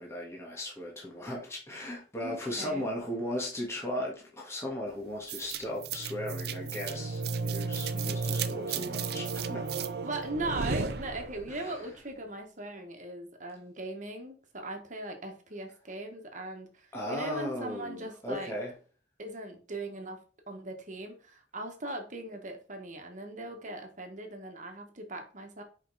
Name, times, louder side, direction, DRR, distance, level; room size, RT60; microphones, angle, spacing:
voice 1, 0.0-9.7 11.5-11.8 16.9-18.7, left 1 dB, 15° left, 1.7 m, -37 dB
voice 2, 2.2-2.9 10.0-18.5 19.2-20.2 20.5-25.6, right 2 dB, 45° right, 1.5 m, -39 dB
sound 1, 5.3-11.6, right 4 dB, 60° right, 0.6 m, -34 dB
5.6 x 5.3 x 4.1 m
head